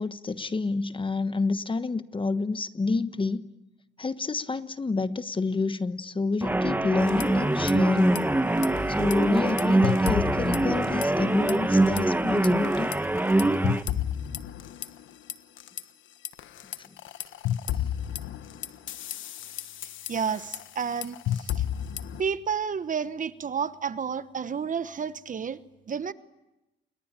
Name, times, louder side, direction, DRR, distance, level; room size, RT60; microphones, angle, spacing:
voice 1, 0.0-3.4 4.0-8.2 8.9-12.9, left 3 dB, 25° left, 12 dB, 1.2 m, -28 dB
sound 1, 6.4-13.8, right 2 dB, 10° right, 1.3 m, -24 dB
sound 2, 7.0-7.7 8.0-8.2 8.6-11.2 11.5-12.0 12.4-15.8 16.2-22.2, left 11 dB, 75° left, 1.3 m, -32 dB
voice 2, 20.1-21.5 22.2-25.6 25.9-26.1, right 6 dB, 40° right, 13 dB, 1.1 m, -30 dB
28.5 x 22.5 x 9.1 m, 0.97 s
cardioid pair, 90°, 20 cm